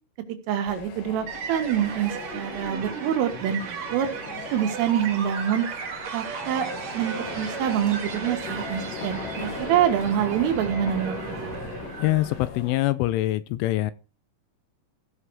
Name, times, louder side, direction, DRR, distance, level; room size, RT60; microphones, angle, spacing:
voice 1, 0.5-4.1 4.5-5.7 6.1-6.7 6.9-11.2, right 10 dB, 80° right, 4.1 m, -26 dB
sound 1, 0.7-12.8, left 7 dB, 65° left, 2.2 m, -40 dB
sound 2, 1.3-12.4, right 6 dB, 55° right, 2.1 m, -35 dB
sound 3, 4.2-11.9, left 2 dB, 30° left, 1.5 m, -42 dB
voice 2, 12.0-13.9, left 16 dB, 80° left, 2.9 m, -24 dB
16.0 x 5.8 x 4.8 m
omnidirectional pair, 5.8 m